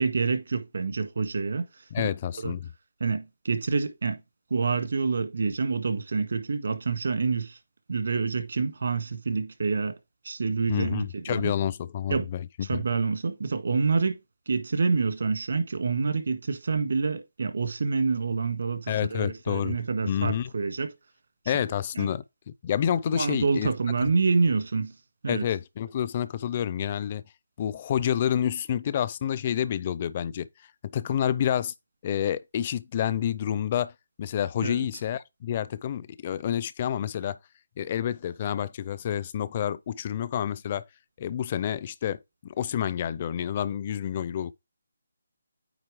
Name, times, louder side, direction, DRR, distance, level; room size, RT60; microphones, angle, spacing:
voice 1, 0.0-1.6 2.0-2.1 2.4-2.5 3.0-4.2 4.5-7.6 7.9-9.9 10.2-11.5 12.1-12.3 12.7-14.2 14.5-20.9 21.9-22.1 23.1-24.9 25.2-25.5 34.6-34.9, right 4 dB, 65° right, 1.6 m, -27 dB
voice 2, 1.9-2.7 10.7-12.8 18.9-19.8 20.1-20.5 21.5-22.2 22.6-23.7 24.0-24.1 25.3-27.2 27.6-30.5 30.8-31.7 32.0-33.9 34.2-37.4 37.8-40.8 41.2-44.5, left 9 dB, 30° left, 0.5 m, -29 dB
9.1 x 3.1 x 4.9 m
figure-of-eight pair, 160°, 0 cm